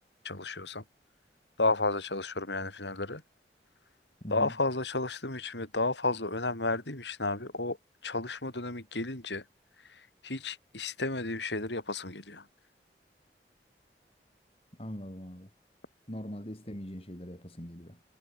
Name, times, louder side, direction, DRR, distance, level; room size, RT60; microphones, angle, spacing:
voice 1, 0.2-0.8 1.6-3.2 4.3-7.8 8.0-9.4 9.8-12.5, left 2 dB, 85° left, 4.9 m, -32 dB
voice 2, 4.2-4.5 14.8-15.5 16.1-18.0, equal, 35° left, 4.6 m, -41 dB
head